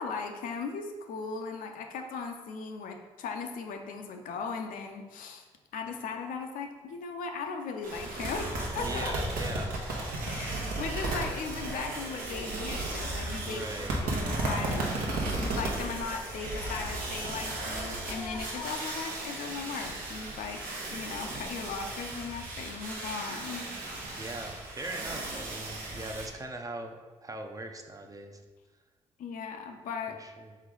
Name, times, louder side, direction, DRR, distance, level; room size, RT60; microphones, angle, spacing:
voice 1, 0.0-5.5 5.7-8.5 8.7-9.1 10.3-13.7 14.0-14.9 15.4-20.6 20.9-23.7 29.2-30.2, left 5 dB, 65° left, 4 dB, 0.5 m, -37 dB
sound 1, 7.8-26.3, right 2 dB, 70° right, 0.9 m, -35 dB
voice 2, 8.7-9.7 13.4-14.0 24.1-26.9 27.2-28.4 30.1-30.5, right 2 dB, 25° right, 4 dB, 0.6 m, -40 dB
Singing, 11.0-11.3 11.6-12.0 12.3-12.6 13.3-14.9 15.6-17.3 17.6-18.8, left 2 dB, 80° left, 0.9 m, -46 dB
3.7 x 3.2 x 3.8 m, 1.3 s
hypercardioid pair, 50°, 15 cm